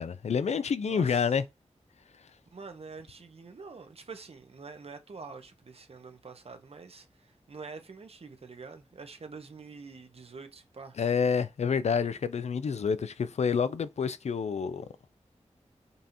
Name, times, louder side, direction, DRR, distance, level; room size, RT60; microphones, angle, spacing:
voice 1, 0.0-1.4 11.0-14.9, left 6 dB, 65° left, 0.4 m, -28 dB
voice 2, 0.9-1.3 2.5-11.0, right 4 dB, 55° right, 0.8 m, -46 dB
5.3 x 2.8 x 2.6 m
wide cardioid pair, 75°, 12 cm